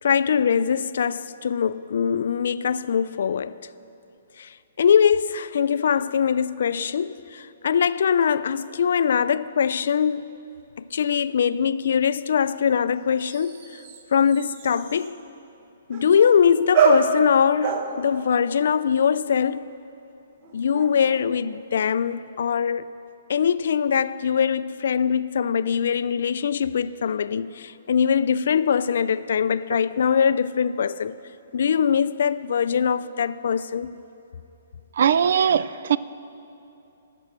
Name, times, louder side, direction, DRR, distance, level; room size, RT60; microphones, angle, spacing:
voice 1, 0.0-3.6 4.4-10.3 10.9-13.6 14.1-15.2 15.9-19.7 20.5-22.9 23.3-31.2 31.5-33.9, left 7 dB, 65° left, 0.3 m, -22 dB
sound 1, 11.1-11.2 13.2-15.2 15.9-16.5 16.7-19.4 20.4-21.7, right 5 dB, 35° right, 0.9 m, -27 dB
voice 2, 35.0-36.0, right 8 dB, 60° right, 0.3 m, -20 dB
12.5 x 6.1 x 7.5 m
hypercardioid pair, 160°, 0 cm